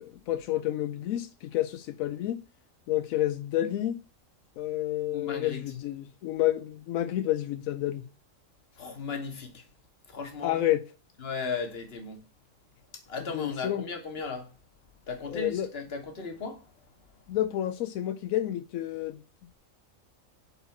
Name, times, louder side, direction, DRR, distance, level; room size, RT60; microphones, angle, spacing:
voice 1, 0.0-2.4 2.9-4.0 4.6-8.0 10.4-10.8 13.3-13.8 15.3-15.7 17.3-19.2, left 13 dB, 85° left, 1.0 m, -29 dB
voice 2, 5.1-5.6 8.8-9.6 10.1-10.6 11.2-12.2 12.9-14.5 15.1-16.7, left 5 dB, 50° left, 1.5 m, -36 dB
5.5 x 4.2 x 5.6 m
omnidirectional pair, 1.4 m